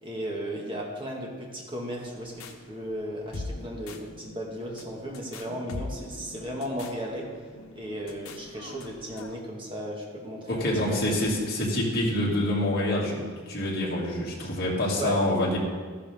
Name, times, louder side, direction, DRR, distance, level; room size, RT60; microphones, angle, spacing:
voice 1, 0.0-7.3 7.7-11.2 15.0-15.2, equal, 25° right, -2 dB, 1.9 m, -35 dB
sound 1, 1.9-9.4, left 2 dB, 90° left, 1.0 m, -42 dB
voice 2, 10.5-15.6, left 1 dB, 45° left, -5 dB, 2.6 m, -26 dB
12.5 x 11.0 x 3.7 m, 1.6 s
head